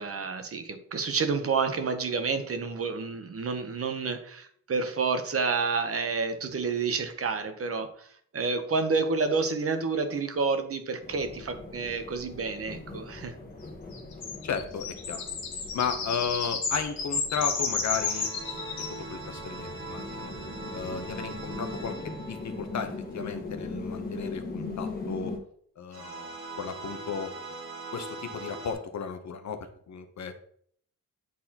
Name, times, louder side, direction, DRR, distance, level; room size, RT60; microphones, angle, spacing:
voice 1, 0.0-8.1 8.3-13.4, right 4 dB, 40° right, 8 dB, 0.8 m, -29 dB
sound 1, 11.0-25.4, left 3 dB, 25° left, 1.3 m, -40 dB
sound 2, 13.9-19.0, left 5 dB, 80° left, 1.5 m, -32 dB
voice 2, 14.4-15.4 15.7-18.3 18.6-20.3 20.7-25.3 25.8-27.3 27.9-30.3, left 6 dB, 50° left, 7 dB, 0.8 m, -34 dB
sound 3, 17.9-23.4 25.9-28.7, right 3 dB, 80° right, 1.8 m, -41 dB
8.6 x 4.0 x 2.8 m, 0.63 s
cardioid pair, 115°, 36 cm